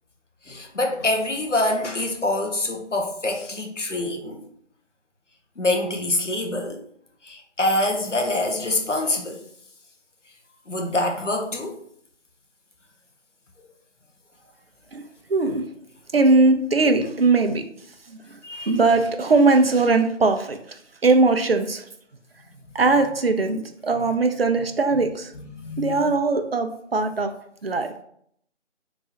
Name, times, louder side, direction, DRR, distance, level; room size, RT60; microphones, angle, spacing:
voice 1, 0.4-4.5 5.6-6.8 7.2-9.4 10.7-11.8 18.4-18.7 25.4-26.1, left 2 dB, 80° left, 2 dB, 1.0 m, -25 dB
voice 2, 15.3-15.6 16.1-17.6 18.1-20.6 21.0-21.8 22.7-25.3 25.8-27.3 27.6-27.9, right 3 dB, 55° right, 6 dB, 0.5 m, -20 dB
3.7 x 3.0 x 2.7 m, 0.68 s
figure-of-eight pair, 160°, 36 cm